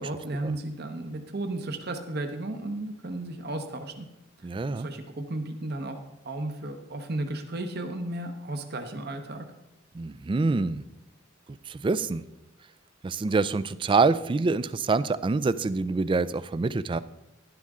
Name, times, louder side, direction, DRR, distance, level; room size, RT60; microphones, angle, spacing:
voice 1, 0.0-4.1 4.4-6.0 6.2-9.4, right 2 dB, 50° right, 6 dB, 1.0 m, -34 dB
voice 2, 4.4-4.9 9.9-10.8 11.7-12.2 13.0-17.0, right 3 dB, 25° right, 16 dB, 0.3 m, -26 dB
11.5 x 11.0 x 3.7 m, 0.90 s
head